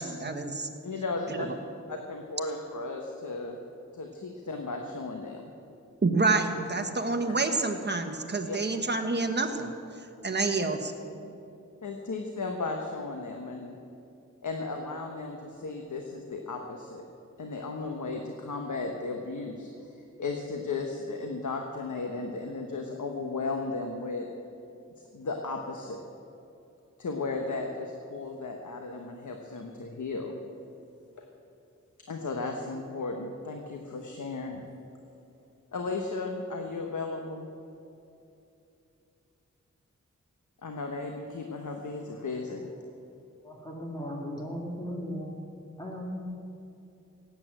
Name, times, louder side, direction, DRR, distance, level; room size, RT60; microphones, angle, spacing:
voice 1, 0.0-0.7 1.3-1.4 6.0-9.7 10.2-10.9, right 3 dB, 35° right, 6 dB, 1.3 m, -28 dB
voice 2, 0.8-1.5 1.9-3.6 3.9-5.4 8.5-8.6 11.8-13.8 14.4-17.1 17.4-24.3 25.1-26.0 27.0-30.3 32.1-34.6 35.7-37.5 40.6-42.7, left 3 dB, 75° left, 2 dB, 1.2 m, -35 dB
voice 3, 43.4-45.4 45.8-46.2, equal, 15° left, -2 dB, 2.1 m, -37 dB
17.0 x 8.9 x 7.7 m, 2.7 s
wide cardioid pair, 105°, 30 cm